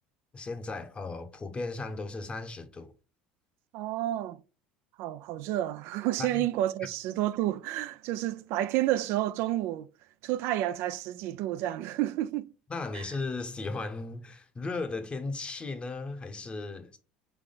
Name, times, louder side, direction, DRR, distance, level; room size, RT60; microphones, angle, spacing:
voice 1, 0.3-2.9 6.2-6.5 12.7-17.0, left 3 dB, 25° left, 0.8 m, -36 dB
voice 2, 3.7-4.4 5.0-9.9 10.2-12.5 12.9-13.1, right 14 dB, 65° right, 0.3 m, -30 dB
3.5 x 3.4 x 3.8 m
supercardioid pair, 90°, 4 cm